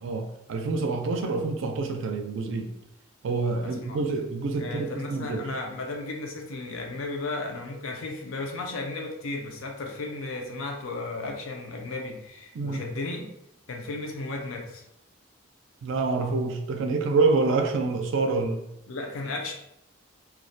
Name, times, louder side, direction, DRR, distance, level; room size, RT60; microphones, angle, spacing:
voice 1, 0.0-2.7 3.2-5.5 12.5-12.8 15.8-18.6, right 3 dB, 70° right, 5 dB, 0.3 m, -27 dB
voice 2, 3.6-4.0 4.6-13.3 13.7-14.9 18.9-19.5, left 2 dB, 85° left, 2 dB, 0.5 m, -34 dB
2.3 x 2.0 x 2.6 m, 0.81 s
head